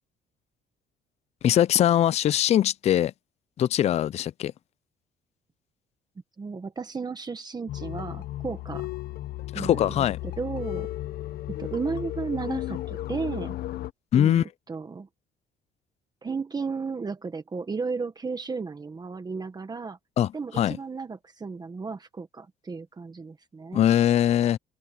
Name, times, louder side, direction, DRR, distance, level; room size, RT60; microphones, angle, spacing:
voice 1, 1.4-3.1 3.6-4.5 9.5-10.2 14.1-14.4 20.2-20.8 23.7-24.6, left 11 dB, 40° left, 0.4 m, -22 dB
voice 2, 6.4-8.9 9.5-10.0 10.4-10.9 11.5-13.5 14.1-15.1 16.2-20.0 20.3-23.8, right 4 dB, 25° right, 1.4 m, -34 dB
sound 1, 7.7-13.9, left 14 dB, 65° left, 0.9 m, -34 dB
cardioid pair, 110°, 17 cm